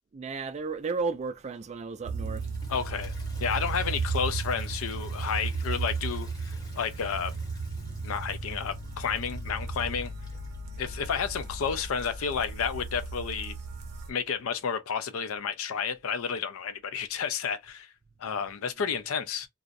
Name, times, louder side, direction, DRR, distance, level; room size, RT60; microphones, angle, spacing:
voice 1, 0.1-2.5, right 4 dB, 35° right, 0.3 m, -33 dB
sound 1, 2.0-14.1, right 4 dB, 90° right, 0.5 m, -35 dB
Toilet flush, 2.2-10.7, left 1 dB, 20° left, 0.8 m, -54 dB
voice 2, 2.7-3.1 3.4-7.3 8.0-10.1 10.8-13.6 14.1-17.9 18.2-19.5, left 6 dB, 90° left, 0.4 m, -31 dB
2.4 x 2.0 x 2.6 m
head